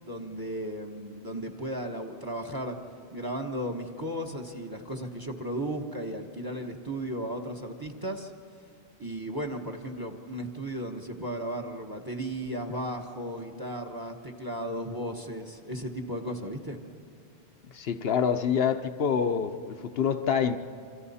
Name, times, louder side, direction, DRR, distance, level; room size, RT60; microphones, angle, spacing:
voice 1, 0.0-2.8 3.1-8.3 9.0-16.8, right 1 dB, 20° right, 4 dB, 1.2 m, -35 dB
voice 2, 17.7-20.6, left 7 dB, 65° left, 8 dB, 1.0 m, -26 dB
27.0 x 25.5 x 4.2 m, 2.3 s
omnidirectional pair, 1.1 m